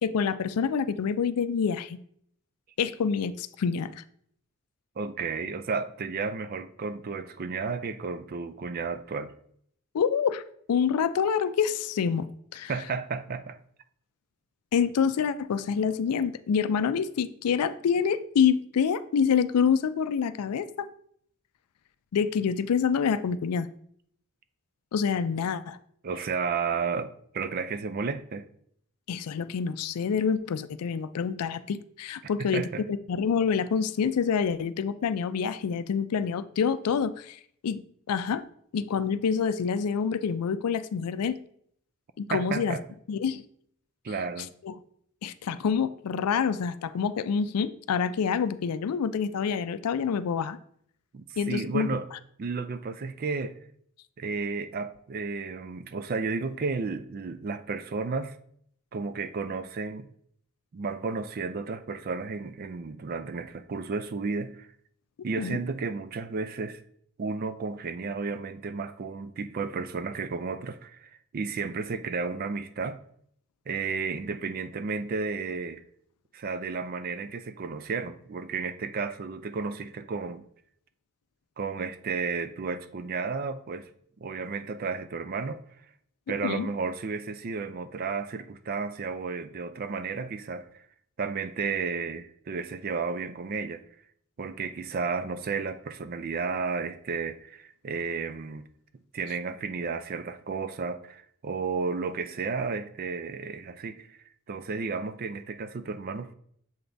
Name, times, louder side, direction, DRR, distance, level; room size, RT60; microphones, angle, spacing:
voice 1, 0.0-2.0 2.8-4.0 9.9-10.4 10.7-12.3 12.5-12.7 14.7-20.9 22.1-23.7 24.9-25.8 29.1-37.8 38.1-38.4 38.7-41.4 42.2-42.8 43.1-43.4 44.6-44.8 45.2-50.6 51.4-51.9 65.4-65.6 86.4-86.7, left 6 dB, 90° left, 14 dB, 0.4 m, -27 dB
voice 2, 5.0-9.3 12.7-13.6 26.0-28.5 32.4-32.8 42.3-42.8 44.0-44.5 51.1-52.1 52.4-53.6 54.2-58.4 58.9-60.1 60.7-64.7 65.2-66.8 67.2-73.0 73.7-75.8 76.3-80.4 81.6-83.9 84.2-85.6 86.3-90.8 91.2-93.8 94.4-98.7 99.1-104.2 104.5-106.3, right 4 dB, 40° right, 12 dB, 0.4 m, -32 dB
7.1 x 3.9 x 3.3 m, 0.66 s
head